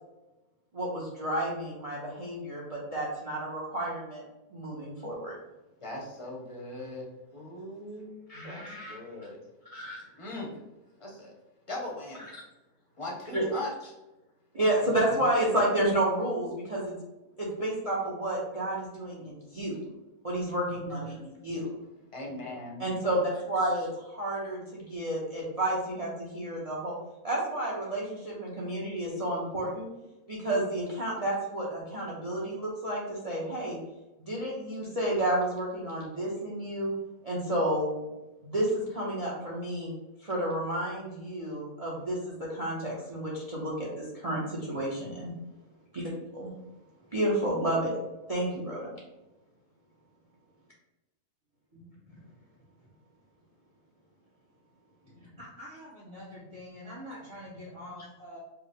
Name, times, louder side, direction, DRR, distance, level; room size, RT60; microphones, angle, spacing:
voice 1, 0.7-4.2 4.5-5.4 8.3-9.3 9.6-10.0 12.3-12.4 13.3-13.5 14.5-16.9 17.4-19.8 20.2-21.7 22.8-27.0 27.2-29.9 30.3-33.8 34.2-36.9 37.2-38.0 38.4-39.9 40.2-45.3 45.9-46.5 47.1-47.9 48.3-49.0, right 1 dB, 40° right, -4 dB, 0.5 m, -31 dB
voice 2, 5.8-9.4 10.2-10.6 11.0-11.3 11.7-12.4 13.0-13.9 22.1-22.8, left 2 dB, 30° left, -2 dB, 0.7 m, -40 dB
voice 3, 20.6-21.0 22.3-22.9 51.7-52.1 52.6-52.7 55.0-58.4, equal, 25° right, -10 dB, 0.9 m, -45 dB
4.6 x 2.0 x 3.5 m, 1.0 s
omnidirectional pair, 1.5 m